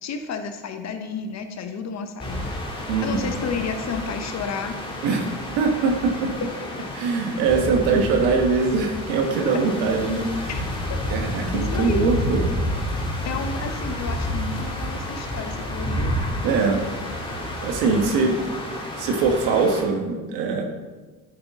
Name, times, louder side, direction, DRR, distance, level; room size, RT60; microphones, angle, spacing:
voice 1, 0.0-2.5 3.0-4.8 6.8-6.9 9.5-9.8 10.5-12.1 13.2-16.2, left 5 dB, 45° left, 7 dB, 0.9 m, -32 dB
sound 1, 2.2-19.8, left 1 dB, 15° left, 1.7 m, -30 dB
voice 2, 2.9-3.3 5.0-5.2 5.6-6.3 6.9-10.5 11.1-12.5 16.4-16.9 17.6-18.4 19.0-20.6, right 4 dB, 90° right, 3 dB, 1.3 m, -22 dB
9.6 x 5.4 x 3.6 m, 1.3 s
supercardioid pair, 95°, 37 cm